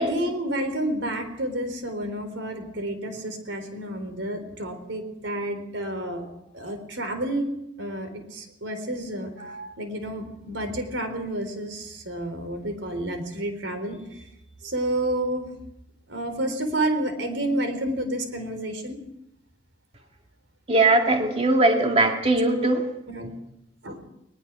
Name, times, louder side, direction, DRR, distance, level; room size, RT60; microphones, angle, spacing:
voice 1, 0.0-6.3 6.5-14.2 14.6-15.5 16.1-19.0 23.1-23.3 23.8-24.0, right 1 dB, 75° right, 8 dB, 4.0 m, -30 dB
voice 2, 20.7-22.8, right 2 dB, 30° right, 3 dB, 2.3 m, -20 dB
20.5 x 20.0 x 6.2 m, 0.81 s
head